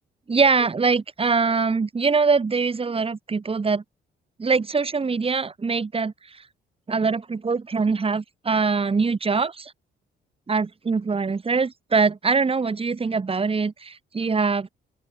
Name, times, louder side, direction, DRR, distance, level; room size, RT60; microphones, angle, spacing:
voice 1, 0.3-3.8 4.4-6.4 6.9-9.7 10.5-14.7, right 4 dB, 30° right, 2.2 m, -23 dB
open air
cardioid pair, 90°, 20 cm